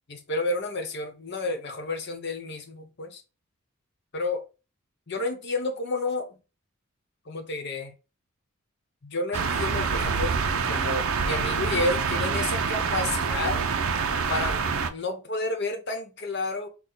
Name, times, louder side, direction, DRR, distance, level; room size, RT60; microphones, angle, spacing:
voice 1, 0.1-3.2 4.1-4.5 5.1-6.4 7.2-7.9 9.0-10.4 10.7-13.6 14.3-16.7, left 2 dB, 50° left, 1.0 m, -31 dB
sound 1, 9.3-14.9, right 5 dB, 70° right, 0.6 m, -26 dB
6.1 x 2.2 x 3.9 m
head